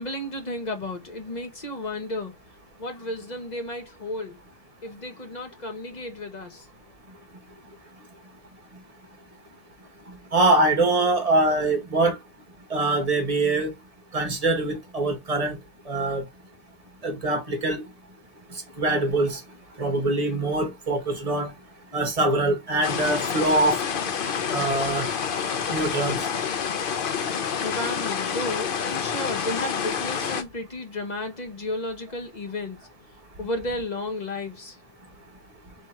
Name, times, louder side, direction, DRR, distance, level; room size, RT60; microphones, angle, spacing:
voice 1, 0.0-2.4 2.8-4.4 4.8-6.7 27.6-32.9 33.4-34.8, left 2 dB, 30° left, 0.9 m, -33 dB
voice 2, 10.3-12.2 12.7-13.7 14.1-15.6 15.9-16.3 17.0-17.8 18.8-19.4 19.8-21.5 21.9-23.8 24.5-25.1 25.7-26.2, right 2 dB, 25° right, 1.2 m, -23 dB
sound 1, 22.8-30.4, left 7 dB, 60° left, 0.5 m, -28 dB
3.6 x 3.4 x 4.3 m
omnidirectional pair, 1.8 m